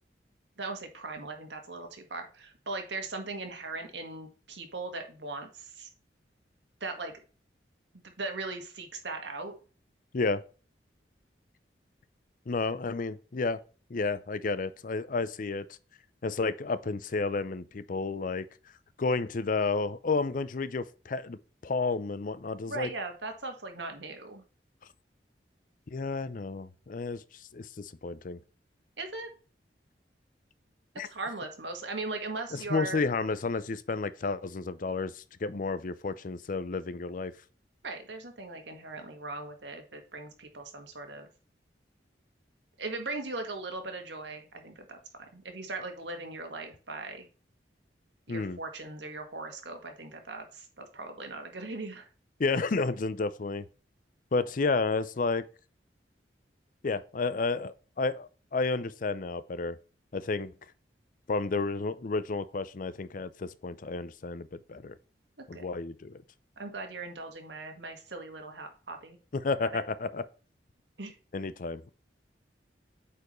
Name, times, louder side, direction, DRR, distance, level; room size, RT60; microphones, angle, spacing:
voice 1, 0.6-5.9 6.8-7.1 8.2-9.5 22.7-24.4 29.0-29.3 31.0-33.0 37.8-41.3 42.8-47.3 48.3-52.1 65.5-65.6 66.6-69.2 69.7-69.8 71.0-71.1, right 3 dB, 90° right, 1.7 m, -39 dB
voice 2, 12.5-13.6 13.9-15.7 16.2-18.5 19.0-22.9 25.9-27.2 27.5-28.4 31.0-31.1 32.5-37.3 48.3-48.6 52.4-53.7 54.3-55.5 56.8-59.8 60.1-60.5 61.3-65.0 65.5-66.2 69.3-70.3 71.3-71.9, left 3 dB, 50° left, 0.5 m, -31 dB
8.3 x 4.6 x 3.1 m
head